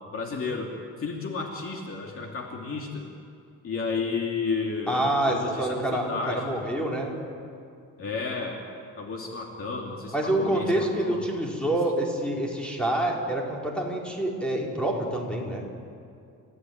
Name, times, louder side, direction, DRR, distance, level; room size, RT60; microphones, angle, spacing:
voice 1, 0.1-0.7 1.0-3.1 3.6-6.4 8.0-8.6 9.0-11.2, left 4 dB, 40° left, 1 dB, 2.7 m, -32 dB
voice 2, 4.9-7.1 10.1-15.7, right 1 dB, 5° left, -2 dB, 4.3 m, -27 dB
30.0 x 16.0 x 9.4 m, 2.5 s
cardioid pair, 150°, 33 cm